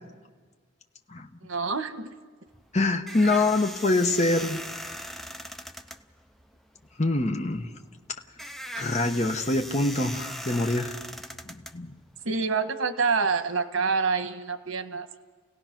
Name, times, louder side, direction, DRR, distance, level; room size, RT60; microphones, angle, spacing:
voice 1, 1.4-2.1 3.2-3.5 12.2-15.2, right 4 dB, 85° right, 9 dB, 1.4 m, -27 dB
sound 1, 2.5-12.4, equal, ahead, 0.6 m, -40 dB
voice 2, 2.7-4.6 7.0-7.7 8.7-11.0 11.5-11.9, left 2 dB, 35° left, 4 dB, 1.0 m, -25 dB
29.0 x 17.5 x 6.0 m, 1.5 s
head